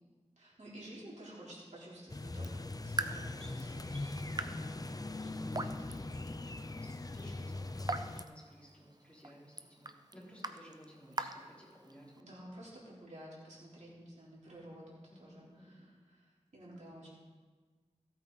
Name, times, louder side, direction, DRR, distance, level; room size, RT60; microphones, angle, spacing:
voice 1, 0.4-4.7 6.0-6.1 7.2-7.7 12.2-17.1, right 1 dB, 80° right, -7 dB, 3.7 m, -52 dB
sound 1, 2.1-8.2, left 2 dB, 30° left, 0.5 m, -41 dB
Raindrop / Drip, 2.3-12.2, right 2 dB, 35° right, 0.7 m, -44 dB
voice 2, 3.1-4.2 4.9-12.4 15.1-15.9 16.8-17.1, equal, 10° left, -6 dB, 4.4 m, -56 dB
15.5 x 8.8 x 4.1 m, 1.4 s
wide cardioid pair, 45°, 12 cm